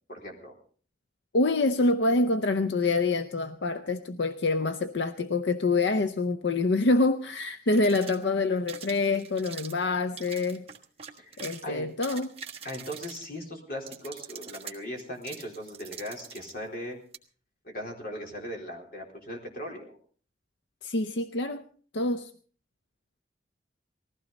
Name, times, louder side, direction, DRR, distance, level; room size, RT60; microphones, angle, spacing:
voice 1, 0.1-0.5 11.2-11.9 12.6-17.0 17.6-20.0, equal, 55° left, 4.0 m, -39 dB
voice 2, 1.3-10.7 11.4-12.3 20.8-21.6 21.9-22.3, left 3 dB, 80° left, 0.7 m, -26 dB
sound 1, 7.0-7.1 7.7-8.3 8.7-9.8 10.2-11.6 11.9-13.4 13.9-16.5 17.1-17.2, right 8 dB, 35° right, 1.4 m, -44 dB
19.5 x 15.5 x 4.1 m
head